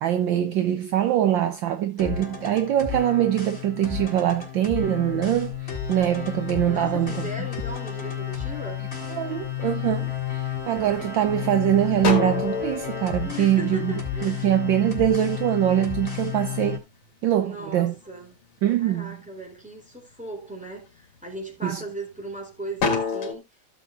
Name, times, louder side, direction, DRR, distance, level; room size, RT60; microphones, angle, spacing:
voice 1, 0.0-7.5 9.1-16.8 17.2-17.9 18.6-19.2 21.6-21.8, right 11 dB, 70° right, 1.3 m, -23 dB
sound 1, 2.0-16.8, left 9 dB, 30° left, 3.6 m, -32 dB
sound 2, 5.1-7.0 7.5-8.2 8.7-9.3 9.6-10.6 11.1-11.2 11.5-14.4 14.8-17.1 17.4-18.5 18.8-19.5 20.0-20.2 20.7-22.3 22.7-23.3, left 5 dB, 90° left, 2.7 m, -30 dB
voice 2, 6.7-8.8 13.2-14.5 17.3-18.4 18.8-23.5, right 1 dB, 5° right, 3.6 m, -37 dB
16.0 x 6.8 x 2.5 m
omnidirectional pair, 2.3 m